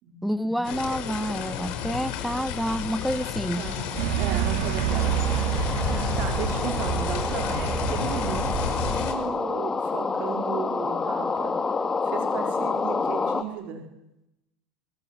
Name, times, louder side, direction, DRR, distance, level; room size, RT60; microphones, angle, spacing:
voice 1, 0.2-3.7, equal, ahead, 0.9 m, -28 dB
sound 1, 0.6-9.1, left 9 dB, 50° left, 6.3 m, -32 dB
voice 2, 3.6-5.4 6.1-11.6 12.0-13.9, right 7 dB, 45° right, 4.6 m, -35 dB
sound 2, 4.0-9.0, right 12 dB, 65° right, 2.3 m, -28 dB
sound 3, 4.9-13.4, left 4 dB, 15° left, 1.9 m, -28 dB
27.0 x 23.0 x 9.5 m
supercardioid pair, 150°, 3 cm